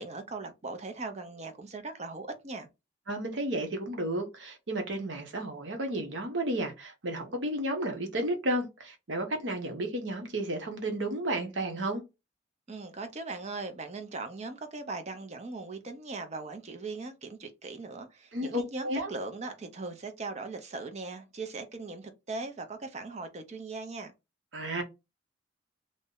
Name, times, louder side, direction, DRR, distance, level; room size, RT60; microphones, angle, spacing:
voice 1, 0.0-2.7 12.7-24.1, right 3 dB, 35° right, 0.6 m, -39 dB
voice 2, 3.1-12.0 18.3-19.1 24.5-24.8, right 1 dB, 75° right, 0.8 m, -32 dB
2.6 x 2.1 x 3.6 m
head